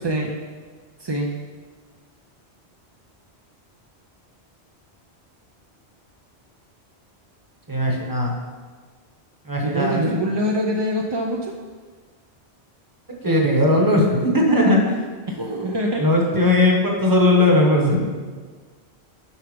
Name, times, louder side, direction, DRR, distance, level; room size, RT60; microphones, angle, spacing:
voice 1, 0.0-0.4 1.0-1.3 9.6-11.5 15.3-16.0, equal, 35° right, 0 dB, 0.4 m, -24 dB
voice 2, 7.7-8.3 9.5-10.0 13.2-14.8 16.0-18.1, left 1 dB, 20° right, 0 dB, 1.1 m, -18 dB
7.0 x 5.8 x 5.1 m, 1.5 s
omnidirectional pair, 1.1 m